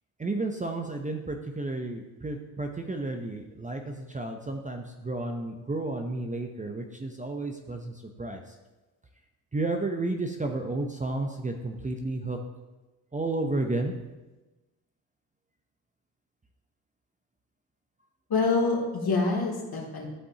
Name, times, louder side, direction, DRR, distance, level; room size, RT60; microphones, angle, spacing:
voice 1, 0.2-8.5 9.5-12.4 13.1-13.9, right 2 dB, 15° right, 4 dB, 0.7 m, -32 dB
voice 2, 18.3-20.1, left 3 dB, 50° left, -2 dB, 2.7 m, -26 dB
13.0 x 5.2 x 2.9 m, 1.1 s
hypercardioid pair, 55°, 48 cm